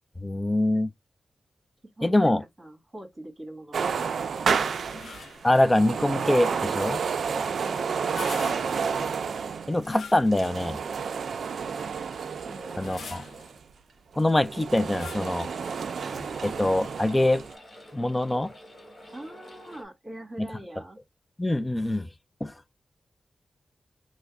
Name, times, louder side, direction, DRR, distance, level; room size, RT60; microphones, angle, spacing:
voice 1, 0.2-0.9 2.0-2.4 5.4-7.0 9.7-10.8 12.8-13.2 14.2-15.5 16.2-17.4 17.9-18.5 20.4-20.5 21.4-22.1 22.4-22.5, left 1 dB, 15° left, 0.3 m, -24 dB
voice 2, 2.0-4.4 7.3-8.1 12.4-12.9 19.1-21.0, right 1 dB, 25° right, 1.8 m, -43 dB
sound 1, 3.7-13.6 14.1-17.5, right 6 dB, 75° right, 0.3 m, -30 dB
sound 2, 4.8-5.5 7.9-9.0 9.8-10.7 11.3-11.4 12.6-13.5 14.8-15.4, left 5 dB, 75° left, 0.6 m, -43 dB
sound 3, 14.8-19.8, equal, 30° left, 1.2 m, -49 dB
3.3 x 2.1 x 3.4 m
wide cardioid pair, 130°, 0 cm